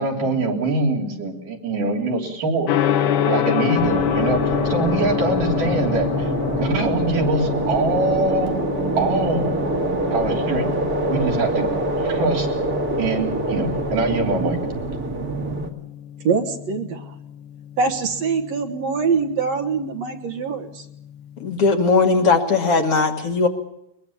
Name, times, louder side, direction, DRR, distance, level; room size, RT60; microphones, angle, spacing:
voice 1, 0.0-2.7 3.3-8.6 9.0-9.5 10.1-10.7 11.1-12.5 13.0-14.8, right 3 dB, 75° right, 4.9 m, -23 dB
Gong, 2.7-21.6, left 10 dB, 70° left, 2.5 m, -28 dB
sound 1, 3.8-15.7, right 2 dB, 35° right, 1.8 m, -25 dB
voice 2, 16.2-17.1 17.8-20.8, right 5 dB, 60° right, 2.4 m, -23 dB
voice 3, 21.4-23.5, left 4 dB, 50° left, 2.3 m, -18 dB
22.5 x 21.5 x 7.2 m
omnidirectional pair, 3.7 m